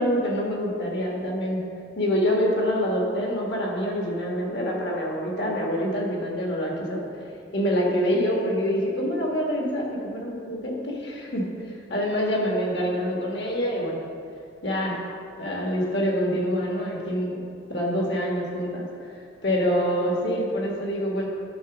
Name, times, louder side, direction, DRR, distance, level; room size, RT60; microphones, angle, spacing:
voice 1, 0.0-1.6 2.0-7.0 7.5-11.5 11.9-14.0 14.6-15.0 15.4-17.4 17.7-18.8 19.4-21.3, equal, 65° left, -2 dB, 1.7 m, -26 dB
11.5 x 4.0 x 6.1 m, 2.4 s
head